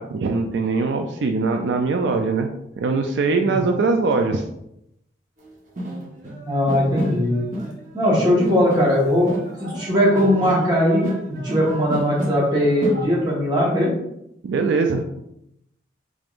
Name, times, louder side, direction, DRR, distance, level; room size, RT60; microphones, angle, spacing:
voice 1, 0.0-2.5 2.8-4.4 14.4-15.0, right 4 dB, 75° right, 4 dB, 0.3 m, -21 dB
sound 1, 5.4-5.5 5.8-13.0, right 1 dB, 45° right, 0.9 m, -29 dB
voice 2, 6.4-7.4 7.9-9.3 9.6-13.9, equal, 25° right, -6 dB, 1.2 m, -19 dB
3.6 x 3.5 x 2.5 m, 0.80 s
head